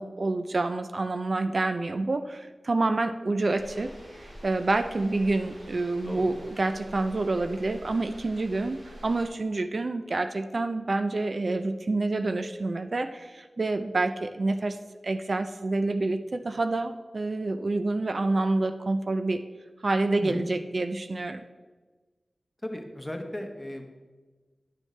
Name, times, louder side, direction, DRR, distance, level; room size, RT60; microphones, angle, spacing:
voice 1, 0.0-3.9 4.2-14.8 15.0-19.4 19.8-21.4, right 2 dB, 55° right, 8 dB, 0.4 m, -28 dB
sound 1, 3.6-9.3, equal, 85° right, 2.7 m, -47 dB
voice 2, 6.0-6.4 20.2-20.5 22.6-23.9, left 1 dB, 15° left, 3 dB, 1.1 m, -35 dB
10.5 x 6.3 x 3.2 m, 1.3 s
wide cardioid pair, 60°, 0 cm